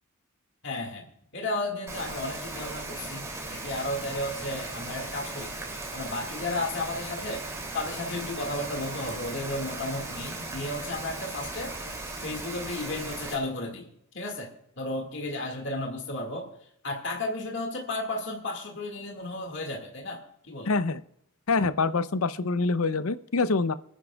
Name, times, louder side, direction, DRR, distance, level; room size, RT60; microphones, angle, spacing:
voice 1, 0.6-1.0 1.3-5.5 5.9-7.5 7.7-11.7 12.2-13.9 14.1-16.5 16.8-20.7, left 2 dB, 55° left, 2 dB, 2.0 m, -33 dB
Rain, 1.9-13.3, right 2 dB, 15° right, 2.8 m, -37 dB
voice 2, 20.7-21.0 21.5-23.7, left 3 dB, 80° left, 14 dB, 0.6 m, -25 dB
27.5 x 10.0 x 2.4 m, 0.72 s
head